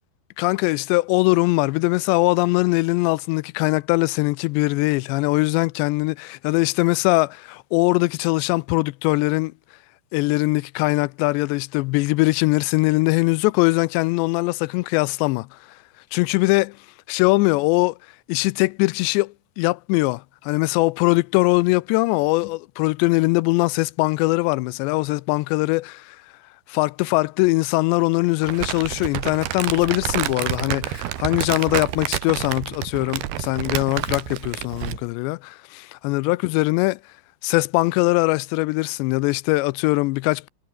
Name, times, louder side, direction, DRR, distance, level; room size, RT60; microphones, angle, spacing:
voice 1, 0.4-9.5 10.1-15.5 16.1-16.7 17.1-18.0 18.3-25.8 26.7-37.0 37.4-40.5, left 23 dB, 90° left, 2.8 m, -21 dB
Crumpling crinkling, 28.4-35.1, right 13 dB, 70° right, 3.2 m, -28 dB
omnidirectional pair, 5.0 m